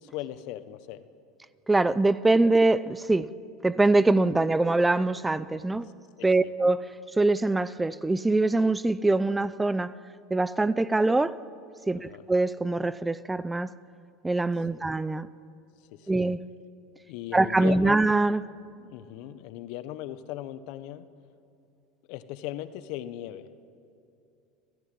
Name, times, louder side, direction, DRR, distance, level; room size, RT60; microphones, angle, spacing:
voice 1, 0.0-1.0 5.8-5.9 6.2-6.5 11.9-12.2 14.7-14.9 15.9-16.3 17.1-18.0 18.8-21.1 22.1-23.5, left 13 dB, 65° left, 1.1 m, -38 dB
voice 2, 1.7-3.3 3.6-5.9 6.2-6.8 7.1-9.9 10.3-11.4 11.9-13.7 14.2-15.3 16.1-16.4 17.3-18.4, right 2 dB, 10° right, 0.6 m, -23 dB
29.5 x 11.0 x 9.3 m
supercardioid pair, 105°, 0 cm